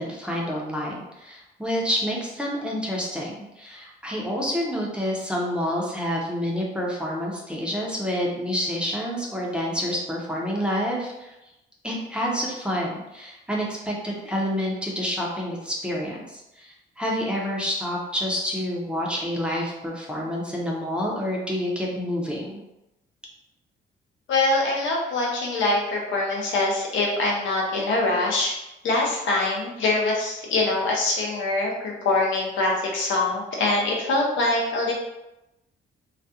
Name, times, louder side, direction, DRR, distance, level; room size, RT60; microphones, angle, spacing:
voice 1, 0.0-11.3 11.8-22.6, equal, 5° right, -3 dB, 0.6 m, -28 dB
voice 2, 24.3-28.5 28.8-34.9, left 2 dB, 75° left, -2 dB, 0.7 m, -24 dB
2.4 x 2.1 x 2.7 m, 0.93 s
cardioid pair, 90°, 20 cm